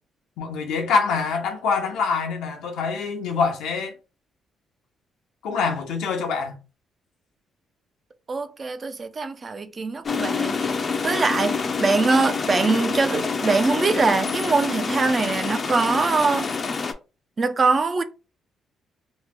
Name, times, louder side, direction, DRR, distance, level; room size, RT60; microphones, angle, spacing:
voice 1, 0.4-3.9 5.4-6.6, left 5 dB, 90° left, 0.8 m, -25 dB
voice 2, 8.3-10.8 11.0-16.5 17.4-18.0, right 4 dB, 35° right, 0.4 m, -23 dB
sound 1, 10.0-16.9, left 4 dB, 40° left, 0.5 m, -27 dB
3.0 x 2.1 x 3.5 m
cardioid pair, 90°, 0 cm